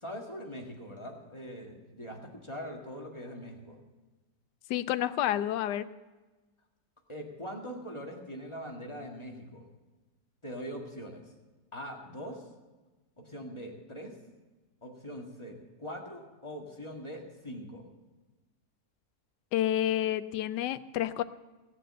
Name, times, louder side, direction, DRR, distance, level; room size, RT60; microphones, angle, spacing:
voice 1, 0.0-3.8 7.1-9.6 10.4-11.2 11.7-12.5 13.2-14.2 14.8-17.8, equal, 15° left, 0 dB, 1.9 m, -42 dB
voice 2, 4.7-5.9 19.5-21.2, left 12 dB, 90° left, 14 dB, 1.2 m, -29 dB
17.0 x 7.7 x 7.6 m, 1.2 s
omnidirectional pair, 1.8 m